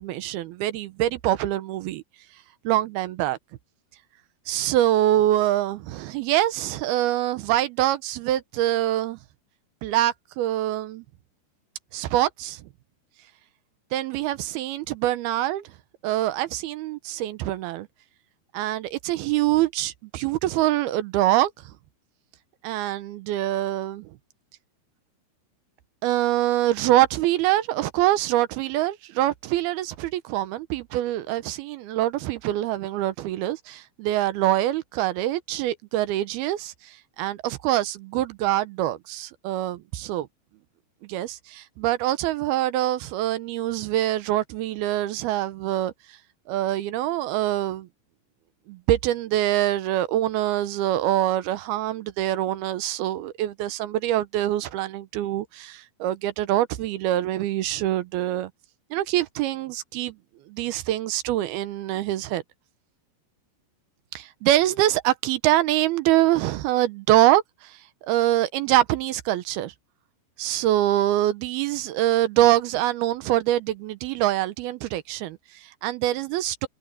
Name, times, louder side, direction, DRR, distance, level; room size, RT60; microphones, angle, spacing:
voice 1, 0.0-2.0 2.6-3.4 4.5-9.2 9.8-11.0 11.9-12.6 13.9-15.7 16.0-17.9 18.5-21.5 22.6-24.1 26.0-40.3 41.1-45.9 46.5-47.9 48.7-58.5 58.9-60.2 60.5-62.4 64.1-67.8 68.1-69.7 70.4-76.7, right 14 dB, 80° right, 2.6 m, -24 dB
omnidirectional pair, 4.8 m